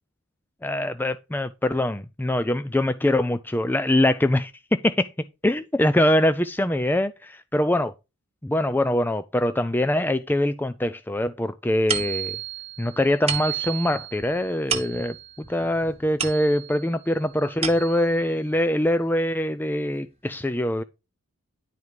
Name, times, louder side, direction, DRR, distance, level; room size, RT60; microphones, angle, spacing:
voice 1, 0.6-5.1 5.4-7.9 8.4-12.4 12.8-20.8, left 1 dB, 10° left, 0.4 m, -23 dB
sound 1, 11.9-16.9 17.3-18.2, right 8 dB, 30° right, 1.5 m, -32 dB
11.0 x 4.8 x 5.2 m
head